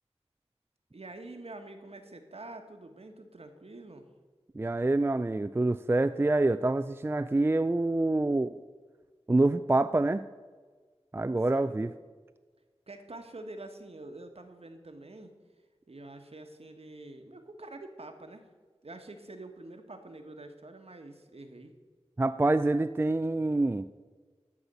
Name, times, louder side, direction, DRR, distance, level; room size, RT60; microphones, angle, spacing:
voice 1, 0.9-4.1 11.5-11.8 12.9-15.3 15.9-18.5 18.8-21.7, right 2 dB, 65° right, 6 dB, 1.2 m, -46 dB
voice 2, 4.6-8.6 9.3-10.2 11.1-11.9 22.2-23.9, right 2 dB, 20° right, 12 dB, 0.3 m, -26 dB
12.5 x 4.2 x 8.0 m, 1.4 s
wide cardioid pair, 45°, 11 cm